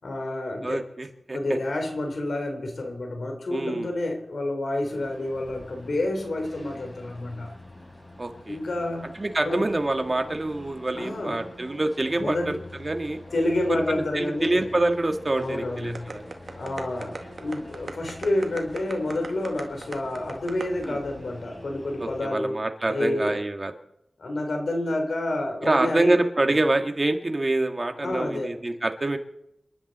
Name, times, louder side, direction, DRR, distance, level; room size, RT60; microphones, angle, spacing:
voice 1, 0.0-0.8 1.3-7.5 8.5-9.1 9.4-9.6 11.0-11.4 12.2-12.6 13.3-14.7 15.4-16.1 16.5-22.6 22.9-23.4 24.2-26.1 28.0-28.5, left 1 dB, 70° left, 3 dB, 3.6 m, -29 dB
voice 2, 0.6-1.6 3.5-3.9 8.2-8.6 9.1-12.5 12.8-13.2 13.7-16.2 20.8-21.0 22.0-23.7 25.6-29.2, right 2 dB, 30° right, 5 dB, 1.9 m, -26 dB
sound 1, 4.8-22.2, left 1 dB, 30° left, 6.5 m, -45 dB
sound 2, 15.9-20.8, right 3 dB, 60° right, 1.8 m, -36 dB
28.0 x 11.0 x 4.3 m, 0.78 s
wide cardioid pair, 85°, 0 cm